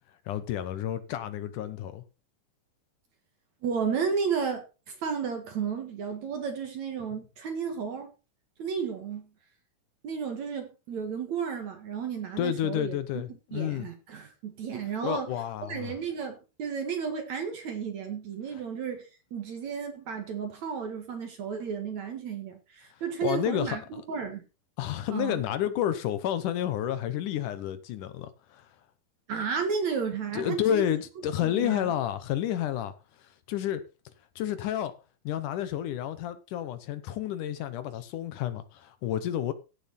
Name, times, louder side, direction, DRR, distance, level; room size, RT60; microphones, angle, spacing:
voice 1, 0.3-2.0 12.4-13.9 15.0-15.9 23.2-24.0 24.8-28.7 30.3-33.8 34.4-34.9 35.3-39.5, left 11 dB, 70° left, 2.2 m, -30 dB
voice 2, 3.6-8.1 8.6-9.3 10.0-13.0 13.5-15.3 15.7-19.0 19.3-23.8 24.1-24.4 25.1-25.4 29.3-30.9 31.4-31.9, right 6 dB, 55° right, 2.8 m, -33 dB
16.0 x 7.0 x 4.1 m
omnidirectional pair, 4.3 m